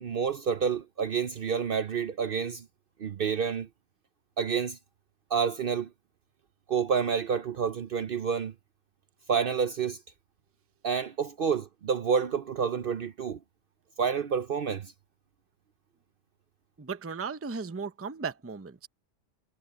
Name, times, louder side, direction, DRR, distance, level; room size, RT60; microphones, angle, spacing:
voice 1, 0.0-2.6 3.0-3.7 4.4-4.8 5.3-5.9 6.7-8.5 9.3-10.0 10.8-13.4 14.0-14.9, right 6 dB, 55° right, 0.7 m, -29 dB
voice 2, 16.8-18.9, right 5 dB, 15° right, 0.6 m, -36 dB
omnidirectional pair, 1.3 m